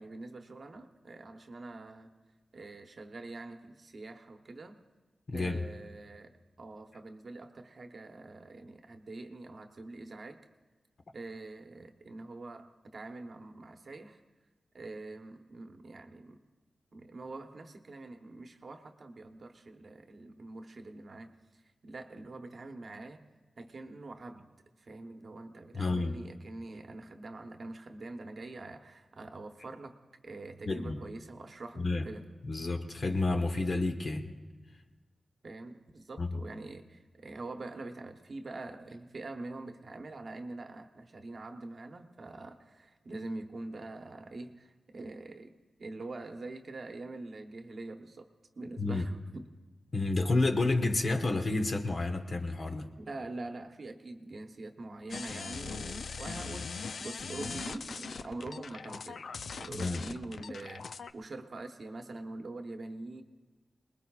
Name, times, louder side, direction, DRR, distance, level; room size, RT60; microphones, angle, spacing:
voice 1, 0.0-2.1 2.5-4.8 5.3-6.3 6.6-10.4 11.1-14.2 14.7-16.4 16.9-23.3 23.6-24.5 24.8-30.0 30.2-32.2 35.4-48.3 48.6-49.4 53.0-59.2 59.6-60.9 61.1-63.2, right 2 dB, 50° right, 5 dB, 1.0 m, -44 dB
voice 2, 5.3-5.6 25.7-26.2 30.6-31.0 31.8-32.1 32.4-34.3 36.2-36.4 48.8-49.1 49.9-52.9 59.7-60.0, left 2 dB, 45° left, 5 dB, 1.1 m, -30 dB
sound 1, 55.1-61.1, left 5 dB, 70° left, 0.4 m, -41 dB
27.0 x 20.5 x 2.4 m, 1.3 s
wide cardioid pair, 145°, 0 cm